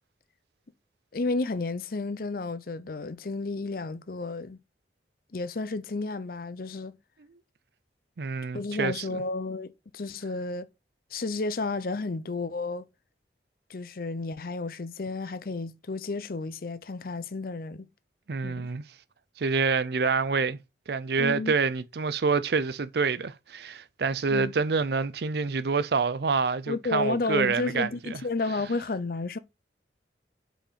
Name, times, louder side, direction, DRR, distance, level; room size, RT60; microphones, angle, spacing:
voice 1, 1.1-4.6 5.3-7.0 8.5-10.7 11.1-12.9 13.7-17.9 18.4-18.7 21.2-21.5 24.3-24.5 26.7-29.4, left 3 dB, 50° left, 0.6 m, -32 dB
voice 2, 8.2-9.2 18.3-18.8 19.4-20.6 20.9-28.2, right 4 dB, 60° right, 0.5 m, -27 dB
5.7 x 4.3 x 5.7 m
head